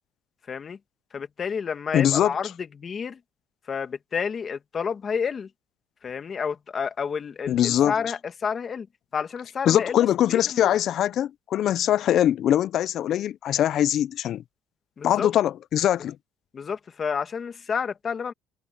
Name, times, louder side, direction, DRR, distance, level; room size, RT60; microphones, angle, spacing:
voice 1, 0.5-0.8 1.1-3.2 3.7-5.5 6.0-8.9 9.1-10.8 15.0-15.3 16.5-18.3, left 6 dB, 35° left, 2.0 m, -30 dB
voice 2, 1.9-2.3 7.5-7.9 9.7-14.4 15.0-16.2, left 11 dB, 55° left, 0.6 m, -22 dB
cardioid pair, 120°, 0 cm